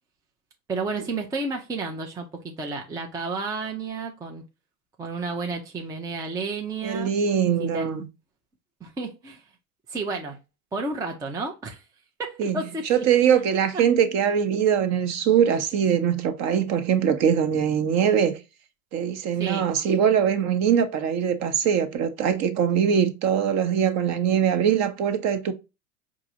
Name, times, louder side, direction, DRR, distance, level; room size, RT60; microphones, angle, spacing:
voice 1, 0.7-4.4 5.0-7.1 7.6-7.9 8.8-9.4 9.9-10.4 10.7-11.8 12.2-13.0 13.3-13.4 13.7-13.8 19.4-19.7, right 3 dB, 10° right, 0.4 m, -31 dB
voice 2, 6.8-8.0 12.4-12.6 12.9-18.4 18.9-25.5, right 8 dB, 40° right, 0.8 m, -22 dB
4.6 x 2.7 x 2.8 m
hypercardioid pair, 90°, 43 cm